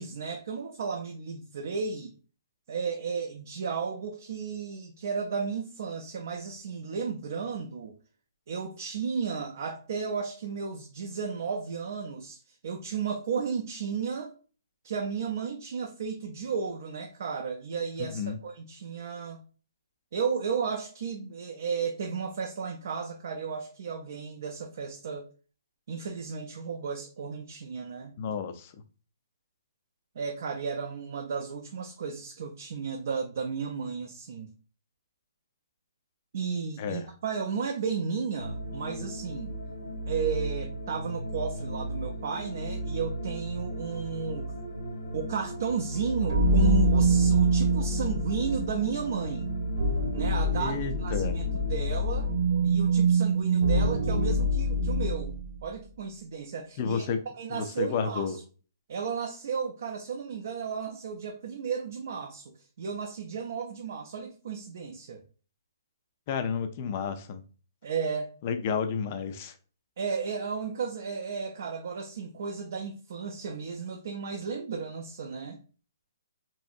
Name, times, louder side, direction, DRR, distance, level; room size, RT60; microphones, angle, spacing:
voice 1, 0.0-2.1 2.7-8.0 8.5-14.3 14.8-19.4 20.1-25.3 25.9-28.1 30.2-34.5 36.3-39.5 40.1-44.5 45.1-49.5 50.1-52.3 52.6-55.4 55.6-58.4 58.9-65.2 67.8-68.3 70.0-75.6, right 6 dB, 45° right, 0.4 m, -34 dB
voice 2, 18.0-18.4 28.2-28.7 36.8-37.0 50.6-51.4 56.8-57.2 57.5-58.4 66.3-67.4 68.4-69.5, left 6 dB, 25° left, 0.3 m, -31 dB
sound 1, 38.4-52.4, right 1 dB, 90° left, 0.8 m, -36 dB
sound 2, 46.3-55.5, right 2 dB, 75° right, 0.8 m, -25 dB
3.0 x 2.6 x 2.4 m
hypercardioid pair, 170°, 2 cm